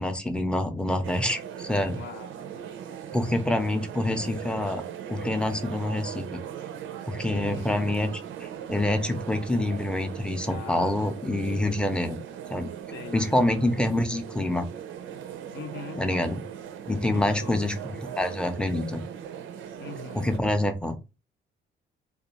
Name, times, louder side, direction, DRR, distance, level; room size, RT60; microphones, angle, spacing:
voice 1, 0.0-2.0 3.1-4.8 5.1-6.4 7.1-12.2 12.5-12.7 13.1-14.7 16.0-16.4 16.9-19.0 20.1-21.0, left 1 dB, 5° left, 0.5 m, -26 dB
sound 1, 1.0-20.4, right 9 dB, 80° right, 0.4 m, -39 dB
voice 2, 2.0-2.3 7.3-7.8 10.5-10.9 12.9-13.5 15.5-16.1 17.1-17.6 19.8-20.2, left 5 dB, 70° left, 0.6 m, -40 dB
2.4 x 2.3 x 2.9 m
cardioid pair, 90°, 20 cm